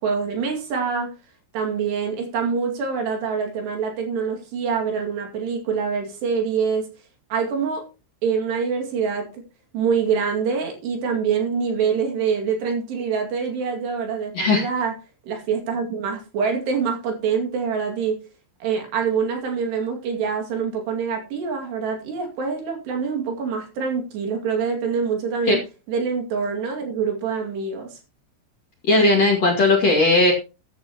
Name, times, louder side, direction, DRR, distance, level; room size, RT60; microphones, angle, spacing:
voice 1, 0.0-1.1 1.5-6.9 7.3-7.8 8.2-9.4 9.7-14.9 15.2-18.2 18.6-25.6 25.9-28.0, right 6 dB, 65° right, 2 dB, 4.2 m, -25 dB
voice 2, 28.9-30.3, left 2 dB, 45° left, 1 dB, 2.6 m, -17 dB
14.5 x 11.0 x 3.0 m, 0.30 s
omnidirectional pair, 5.5 m